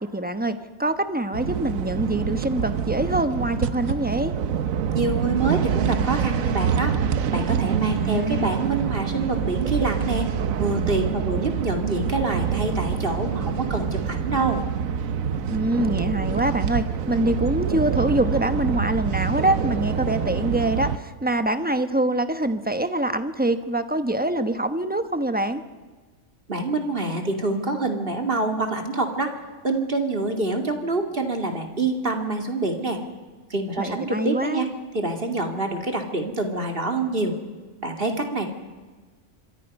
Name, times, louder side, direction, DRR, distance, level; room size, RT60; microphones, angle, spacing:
voice 1, 0.0-4.3 7.9-8.6 15.5-25.6 33.8-34.7, right 1 dB, 10° right, 9 dB, 1.0 m, -25 dB
sound 1, 1.3-21.0, right 8 dB, 90° right, 1.3 m, -26 dB
voice 2, 4.9-6.9 7.3-10.3 10.6-14.6 26.5-29.3 29.6-33.0 33.5-34.7 34.9-37.3 37.8-38.5, right 2 dB, 45° right, 3 dB, 2.6 m, -26 dB
26.0 x 23.0 x 5.4 m, 1.4 s
omnidirectional pair, 1.4 m